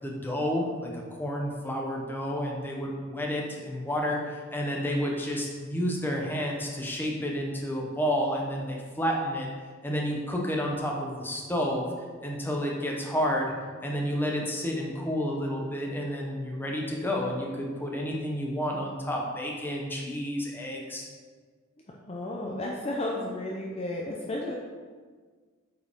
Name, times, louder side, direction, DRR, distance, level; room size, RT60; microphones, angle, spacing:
voice 1, 0.0-9.5 9.8-11.9 12.2-13.5 13.8-21.1, equal, 10° left, -1 dB, 0.9 m, -30 dB
voice 2, 22.0-24.5, left 1 dB, 30° left, -2 dB, 0.6 m, -33 dB
8.1 x 4.6 x 3.6 m, 1.5 s
head